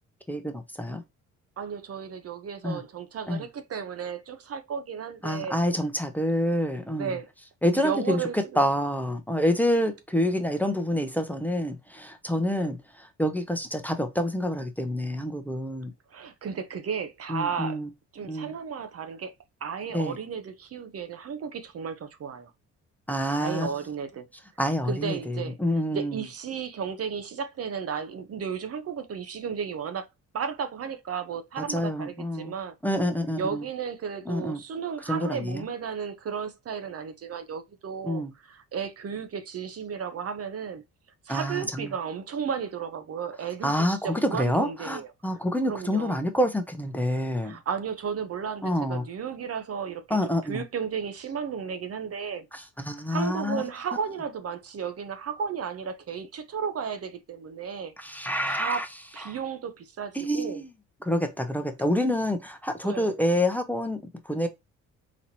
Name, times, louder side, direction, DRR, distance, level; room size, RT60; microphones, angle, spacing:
voice 1, 0.3-1.0 2.6-2.8 3.3-3.4 5.2-7.2 7.6-12.8 13.2-15.9 17.3-17.9 18.3-18.5 19.9-20.2 23.1-23.7 24.6-26.2 31.6-32.5 32.8-33.6 34.3-34.6 35.1-35.6 38.0-38.3 41.3-41.9 43.6-47.6 48.6-49.0 50.1-50.6 52.5-53.6 58.0-58.9 59.3-59.4 60.1-60.7 61.0-64.5, equal, 5° left, 0.7 m, -27 dB
voice 2, 1.6-5.6 6.9-7.3 7.6-8.6 12.5-12.7 16.1-17.8 18.1-19.3 19.6-22.5 23.3-24.3 24.8-25.6 25.9-30.1 30.3-32.7 33.4-40.8 41.3-45.1 45.7-46.2 47.4-52.5 53.1-57.9 58.5-58.8 59.1-60.6 62.8-63.2, right 6 dB, 50° right, 0.8 m, -34 dB
4.1 x 2.9 x 2.8 m
cardioid pair, 90°, 30 cm